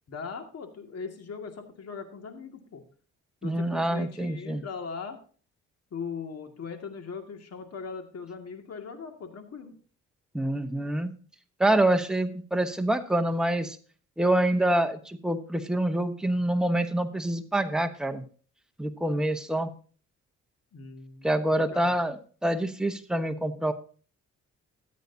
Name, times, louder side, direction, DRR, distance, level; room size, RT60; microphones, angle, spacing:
voice 1, 0.1-2.8 3.4-5.2 5.9-9.7 20.7-21.4 21.7-21.9, left 5 dB, 55° left, 5 dB, 2.2 m, -39 dB
voice 2, 3.4-4.6 10.3-11.1 11.6-13.8 14.2-18.2 18.8-19.7 21.2-22.1 22.4-23.7, right 1 dB, ahead, 6 dB, 1.0 m, -26 dB
14.0 x 8.3 x 2.8 m, 0.41 s
cardioid pair, 90°, 30 cm